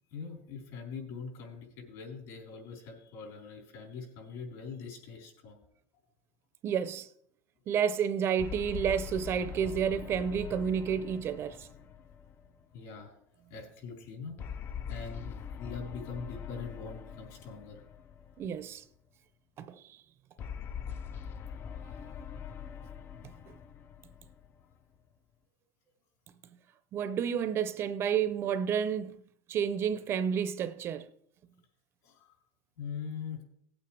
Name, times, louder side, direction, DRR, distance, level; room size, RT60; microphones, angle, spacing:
voice 1, 0.1-5.6 12.7-13.2 13.5-14.4 14.9-17.8 32.0-32.4 32.8-33.4, left 5 dB, 60° left, 4.0 m, -42 dB
voice 2, 6.6-7.1 7.7-11.7 18.4-18.8 19.6-20.0 26.9-29.2 29.5-31.1, right 8 dB, 35° right, 0.6 m, -30 dB
sound 1, 8.4-13.0 14.4-18.8 20.4-25.0, left 7 dB, 30° left, 0.5 m, -43 dB
18.0 x 8.6 x 3.3 m
supercardioid pair, 145°, 8 cm